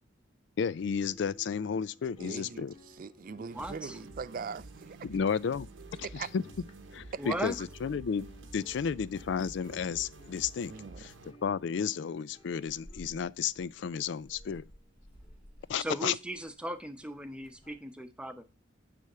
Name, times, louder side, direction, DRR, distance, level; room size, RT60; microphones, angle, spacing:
voice 1, 0.6-2.7 5.0-5.7 5.9-6.1 6.3-6.4 6.9-8.3 8.5-10.7 11.0-11.1 11.4-14.6 15.7-16.1, left 6 dB, 65° left, 0.3 m, -32 dB
sound 1, 0.7-6.0 6.3-17.7, equal, 25° left, 1.8 m, -57 dB
voice 2, 2.2-5.0 6.0-6.3 7.1-7.3 10.7-11.1, right 5 dB, 45° right, 0.4 m, -41 dB
voice 3, 3.4-4.0 7.2-7.6 15.8-18.4, right 1 dB, 5° right, 0.8 m, -37 dB
sound 2, 3.5-11.3, right 2 dB, 85° right, 1.0 m, -50 dB
9.5 x 3.5 x 6.6 m
head